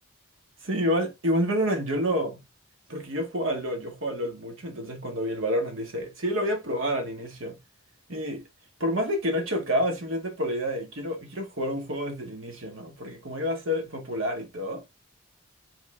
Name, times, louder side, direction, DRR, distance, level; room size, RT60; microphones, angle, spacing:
voice 1, 0.6-2.4 2.9-7.6 8.1-8.5 8.8-14.8, equal, 65° right, 1.3 m, -29 dB
3.7 x 3.2 x 3.6 m
head